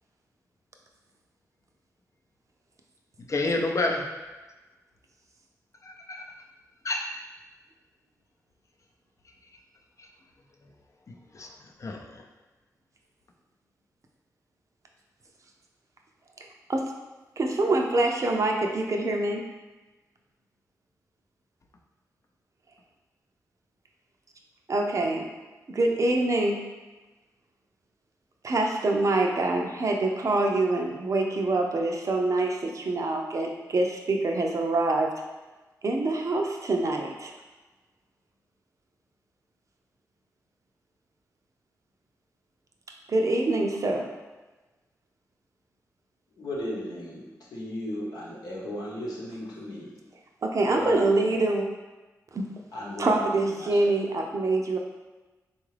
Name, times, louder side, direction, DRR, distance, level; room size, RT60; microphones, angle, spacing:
voice 1, 3.3-4.0 5.8-6.3 6.8-7.1 11.1-11.5 11.8-12.0, left 2 dB, 50° left, 1 dB, 0.5 m, -29 dB
voice 2, 17.4-19.5 24.7-25.3 25.7-26.6 28.4-35.1 35.8-37.3 43.1-44.1 50.4-51.7 52.3-52.4 53.0-54.8, right 2 dB, 55° right, 2 dB, 0.5 m, -25 dB
voice 3, 46.4-49.9 50.8-51.4 52.7-53.9, left 1 dB, 80° left, -5 dB, 0.9 m, -36 dB
3.8 x 2.4 x 3.2 m, 1.2 s
cardioid pair, 55°, 7 cm